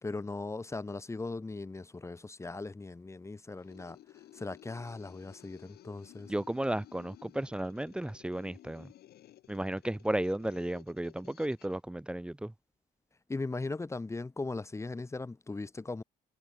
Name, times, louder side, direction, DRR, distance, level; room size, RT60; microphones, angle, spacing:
voice 1, 0.0-4.0 4.3-6.3 13.3-16.0, left 3 dB, 15° left, 2.9 m, -38 dB
sound 1, 3.6-11.8, left 13 dB, 70° left, 3.1 m, -56 dB
voice 2, 6.3-8.9 9.5-12.5, right 1 dB, 5° right, 1.1 m, -34 dB
cardioid pair, 110°, 17 cm